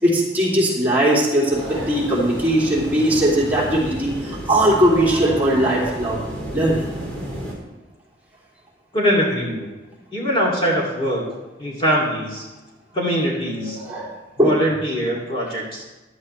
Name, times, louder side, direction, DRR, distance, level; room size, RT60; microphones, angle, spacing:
voice 1, 0.0-6.2 6.5-6.8 13.6-14.1 14.4-14.6, right 1 dB, 10° right, -5 dB, 3.1 m, -19 dB
sound 1, 1.5-7.5, right 1 dB, 10° left, 3.8 m, -32 dB
voice 2, 8.9-9.7 10.1-11.2 11.6-12.4 12.9-13.8 14.4-15.8, equal, 30° left, -4 dB, 2.7 m, -22 dB
16.0 x 11.5 x 3.3 m, 1.1 s
head